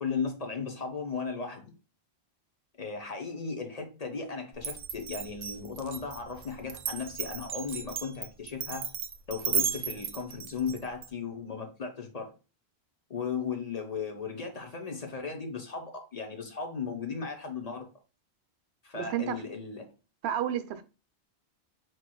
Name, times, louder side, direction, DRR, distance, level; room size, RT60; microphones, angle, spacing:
voice 1, 0.0-1.7 2.8-8.9 9.3-12.3 13.1-17.9 18.8-19.9, left 5 dB, 40° left, 0.7 m, -36 dB
Glass, 4.6-11.1, right 7 dB, 55° right, 0.4 m, -34 dB
voice 2, 19.0-19.4 20.2-20.8, right 10 dB, 85° right, 0.8 m, -31 dB
4.6 x 4.5 x 2.2 m
omnidirectional pair, 1.1 m